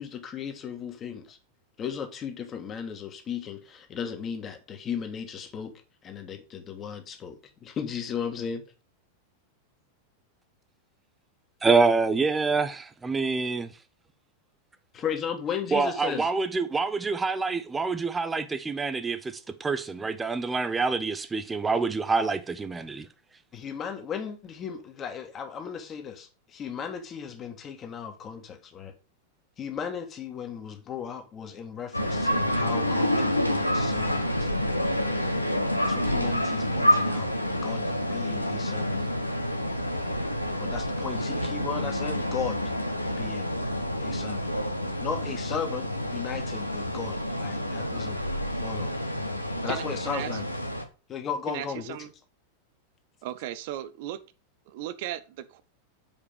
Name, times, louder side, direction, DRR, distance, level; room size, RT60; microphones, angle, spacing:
voice 1, 0.0-1.4 1.8-5.7 6.0-8.6 14.9-16.3 23.5-28.9 29.6-34.5 35.0-35.2 35.8-37.3 37.6-39.1 40.6-42.6 43.2-43.5 44.0-44.5 45.0-48.2 48.6-49.0 49.6-50.4 51.1-52.0, left 7 dB, 25° left, 1.7 m, -36 dB
voice 2, 11.6-13.7 15.7-23.1, right 4 dB, 15° right, 0.8 m, -26 dB
sound 1, 31.9-50.8, left 1 dB, 85° left, 1.0 m, -28 dB
voice 3, 49.7-50.3 51.5-52.1 53.2-54.2 54.7-55.6, right 12 dB, 50° right, 0.7 m, -36 dB
7.4 x 4.9 x 5.1 m
figure-of-eight pair, 90°, 0 cm